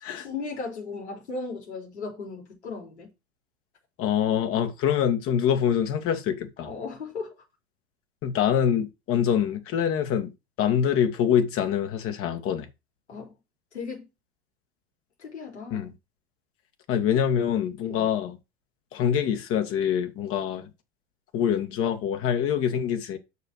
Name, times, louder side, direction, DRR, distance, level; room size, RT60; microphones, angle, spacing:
voice 1, 0.2-3.1 6.6-7.3 13.1-13.3 13.7-14.1 15.2-15.9 17.9-18.1, left 4 dB, 90° left, 4.5 m, -36 dB
voice 2, 4.0-6.7 8.2-10.3 10.6-12.7 15.7-15.9 16.9-18.4 18.9-20.7 21.3-23.2, left 8 dB, 40° left, 2.1 m, -25 dB
6.8 x 6.0 x 6.4 m
hypercardioid pair, 100°, 33 cm